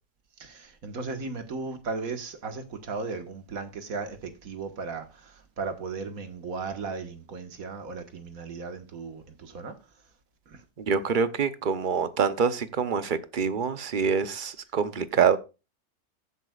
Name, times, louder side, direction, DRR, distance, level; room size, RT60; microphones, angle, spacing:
voice 1, 0.4-9.8 10.5-10.6, right 4 dB, 70° right, 1.9 m, -36 dB
voice 2, 10.9-15.4, right 6 dB, 45° right, 0.8 m, -25 dB
15.0 x 8.3 x 2.4 m
omnidirectional pair, 1.6 m